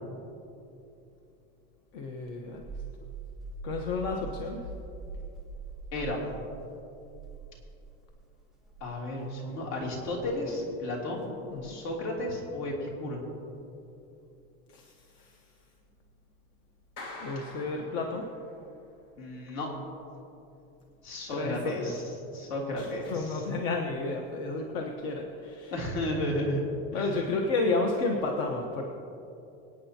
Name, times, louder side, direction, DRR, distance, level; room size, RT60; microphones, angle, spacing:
voice 1, 1.9-2.6 3.6-4.7 11.5-11.8 14.7-15.5 17.2-18.3 21.3-21.9 22.8-25.7 26.9-28.8, left 3 dB, 50° left, 2 dB, 1.1 m, -32 dB
sound 1, 2.2-8.1 8.6-8.9 10.1-10.4 11.5-11.9, right 4 dB, ahead, 0.6 m, -43 dB
voice 2, 5.9-6.2 8.8-11.3 11.6-13.2 19.2-19.7 21.0-22.0 22.3-23.4 25.7-26.6 26.9-27.1, left 1 dB, 65° left, -2 dB, 3.0 m, -33 dB
Clapping, 17.0-18.7, left 2 dB, 85° left, 2.9 m, -45 dB
26.0 x 9.1 x 2.9 m, 2.8 s
cardioid pair, 180°, 30 cm